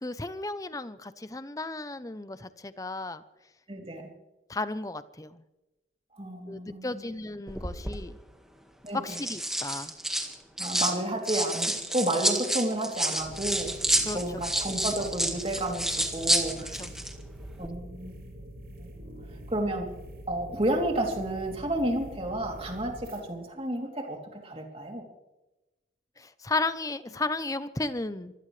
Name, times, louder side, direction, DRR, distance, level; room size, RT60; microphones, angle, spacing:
voice 1, 0.0-3.2 4.5-5.4 6.5-8.1 8.9-9.9 14.0-14.4 16.8-16.9 26.2-28.3, left 2 dB, 20° left, 13 dB, 0.7 m, -34 dB
voice 2, 3.7-4.1 6.2-7.1 8.8-9.2 10.6-13.7 14.1-16.8 17.6-18.2 18.8-18.9 19.5-19.9 20.3-25.0, right 1 dB, 30° right, 1 dB, 3.1 m, -31 dB
sound 1, 7.5-8.0 8.9-11.0 11.2-17.1 17.4-17.7, right 1 dB, 5° right, 1.7 m, -29 dB
sound 2, 13.2-23.2, equal, 55° right, 6.9 m, -45 dB
25.0 x 16.5 x 3.3 m, 1.0 s
head